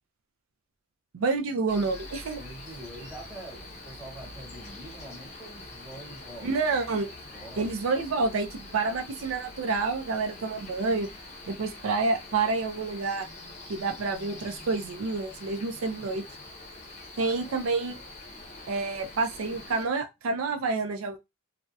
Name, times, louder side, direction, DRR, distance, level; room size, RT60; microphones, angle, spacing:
voice 1, 1.1-2.4 6.4-7.1 7.6-11.1 11.5-13.3 13.7-16.2 17.2-18.0 18.7-21.2, right 4 dB, 75° right, 0.4 m, -28 dB
Cricket, 1.7-19.9, left 2 dB, 35° left, 0.6 m, -45 dB
voice 2, 2.3-6.5 7.3-7.7 17.2-17.3, right 1 dB, 5° right, 1.2 m, -45 dB
2.6 x 2.0 x 2.3 m
head